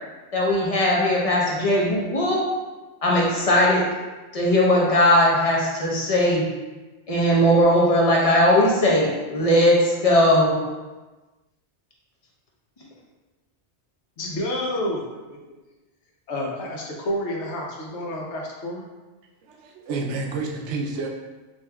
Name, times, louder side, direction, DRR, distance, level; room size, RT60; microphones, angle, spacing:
voice 1, 0.3-2.4 3.0-3.9 4.3-6.5 7.1-10.6, left 1 dB, 35° left, -4 dB, 0.7 m, -19 dB
voice 2, 14.2-15.4 16.3-18.8, left 1 dB, 75° left, -2 dB, 1.0 m, -29 dB
voice 3, 19.4-21.1, right 3 dB, 80° right, 1 dB, 0.9 m, -29 dB
5.0 x 2.6 x 2.2 m, 1.2 s
omnidirectional pair, 1.2 m